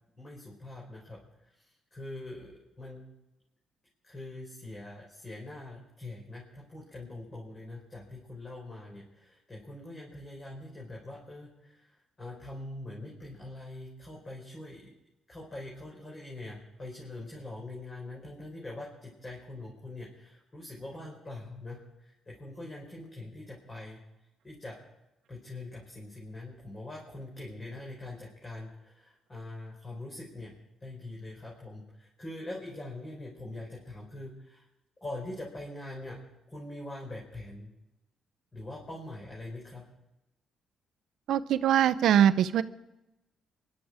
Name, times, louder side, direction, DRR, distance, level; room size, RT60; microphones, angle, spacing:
voice 1, 0.2-1.2 1.5-1.6 1.9-3.0 4.0-14.9 15.3-24.0 24.4-24.8 25.3-30.5 30.8-34.7 35.0-36.2 36.5-37.7 38.5-39.8, left 2 dB, 30° left, -3 dB, 4.9 m, -43 dB
voice 2, 41.3-42.6, right 10 dB, 75° right, 13 dB, 0.6 m, -22 dB
24.0 x 12.0 x 4.9 m, 0.96 s
cardioid pair, 90°, 0 cm